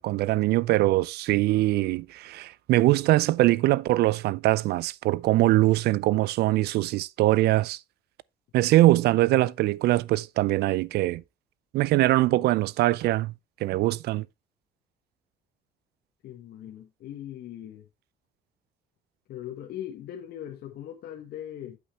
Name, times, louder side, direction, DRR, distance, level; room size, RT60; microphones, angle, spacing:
voice 1, 0.0-7.8 8.5-11.2 11.7-13.3 13.6-14.2, right 17 dB, 70° right, 0.5 m, -22 dB
voice 2, 16.2-17.9 19.3-21.8, left 11 dB, 65° left, 1.5 m, -40 dB
8.5 x 8.4 x 3.3 m
cardioid pair, 110°, 17 cm